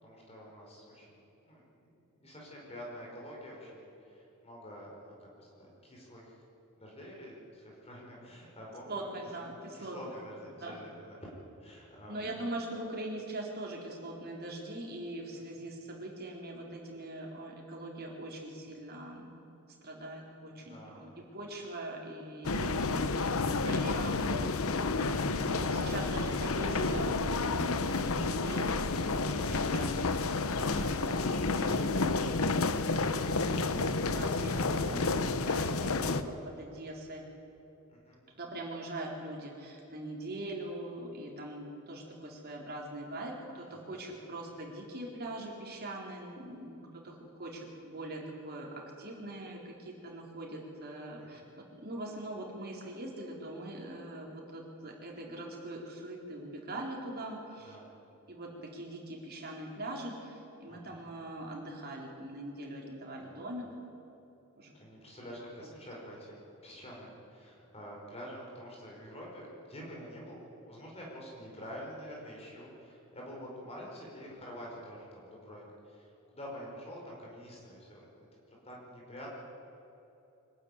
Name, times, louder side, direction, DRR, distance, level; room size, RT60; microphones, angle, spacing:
voice 1, 0.0-6.4 6.7-9.1 9.4-9.5 9.7-11.3 11.6-12.4 20.6-21.2 25.5-26.2 37.9-38.2 43.7-43.8 51.2-51.5 57.6-58.0 60.7-61.0 63.2-63.6 64.7-79.3, equal, 30° left, -3 dB, 4.9 m, -48 dB
voice 2, 8.9-10.1 10.6-10.8 12.1-19.3 19.8-24.2 25.0-30.4 30.7-37.2 38.3-57.8 58.3-63.7 64.6-64.7 65.6-65.7, right 1 dB, 45° right, -1 dB, 4.3 m, -42 dB
sound 1, 22.4-36.2, left 3 dB, 65° left, 1.0 m, -30 dB
24.5 x 12.5 x 9.9 m, 3.0 s
head